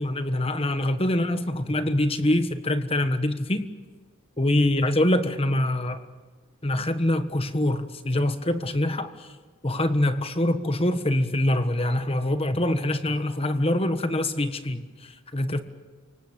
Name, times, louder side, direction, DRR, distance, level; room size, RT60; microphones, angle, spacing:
voice 1, 0.0-3.6 4.4-6.0 6.6-9.3 9.6-15.6, left 1 dB, 25° left, 1.4 m, -24 dB
29.0 x 25.0 x 7.5 m
head